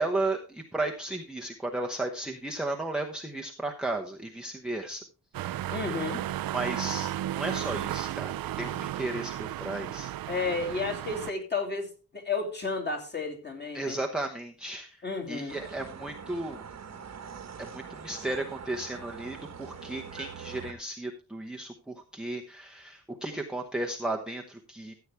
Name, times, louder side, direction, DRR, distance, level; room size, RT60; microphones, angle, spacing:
voice 1, 0.0-5.0 6.5-7.1 7.3-8.3 8.6-10.1 13.7-15.0 15.3-16.6 17.6-24.9, right 2 dB, ahead, 0 dB, 0.9 m, -34 dB
sound 1, 5.3-11.3, right 13 dB, 65° right, 0.6 m, -34 dB
voice 2, 5.7-6.2 10.3-14.0 15.0-15.6, left 4 dB, 25° left, 4 dB, 2.7 m, -32 dB
sound 2, 15.5-20.7, right 7 dB, 45° right, 1.3 m, -43 dB
14.5 x 8.1 x 3.4 m, 0.34 s
wide cardioid pair, 160°, 38 cm